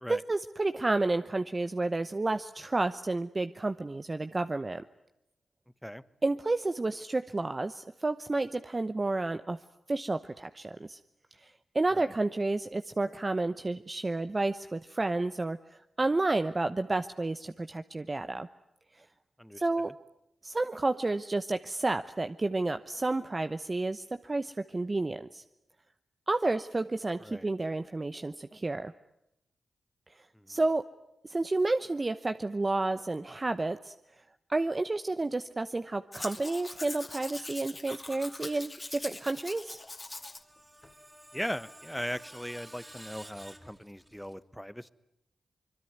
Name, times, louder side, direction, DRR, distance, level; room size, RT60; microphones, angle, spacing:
voice 1, 0.1-4.8 6.2-9.6 9.9-11.0 11.4-18.5 19.6-19.9 20.4-25.4 26.3-28.9 30.5-30.8 31.2-33.9 34.5-39.8, right 2 dB, 35° right, 10 dB, 0.9 m, -31 dB
voice 2, 19.4-19.9 27.2-27.5 30.3-30.6 41.3-44.9, equal, 5° left, 15 dB, 1.2 m, -39 dB
Domestic sounds home sounds, 36.1-40.4 40.8-40.9, left 2 dB, 30° left, 2.5 m, -43 dB
Screech, 40.1-44.3, right 1 dB, 15° right, 3.6 m, -52 dB
24.5 x 22.0 x 9.5 m, 0.85 s
supercardioid pair, 45°, 0 cm